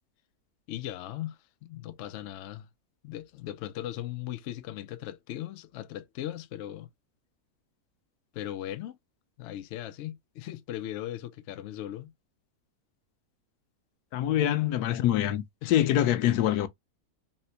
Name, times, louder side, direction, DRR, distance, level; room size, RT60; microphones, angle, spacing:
voice 1, 0.7-2.7 3.0-6.9 8.3-9.0 9.4-12.1 15.6-15.7, left 13 dB, 65° left, 0.7 m, -38 dB
voice 2, 14.1-16.7, left 12 dB, 90° left, 1.1 m, -25 dB
4.2 x 2.1 x 2.7 m
omnidirectional pair, 1.6 m